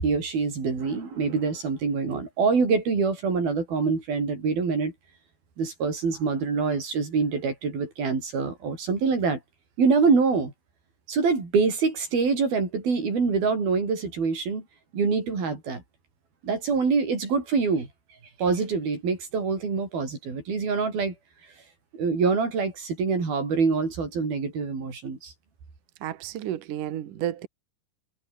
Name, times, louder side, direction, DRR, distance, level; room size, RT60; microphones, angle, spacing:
voice 1, 0.0-4.9 5.6-9.4 9.8-10.5 11.1-14.6 14.9-15.8 16.4-17.9 18.4-21.1 21.9-25.3, right 4 dB, 90° right, 8.2 m, -25 dB
voice 2, 26.0-27.5, right 11 dB, 65° right, 2.9 m, -31 dB
omnidirectional pair, 4.2 m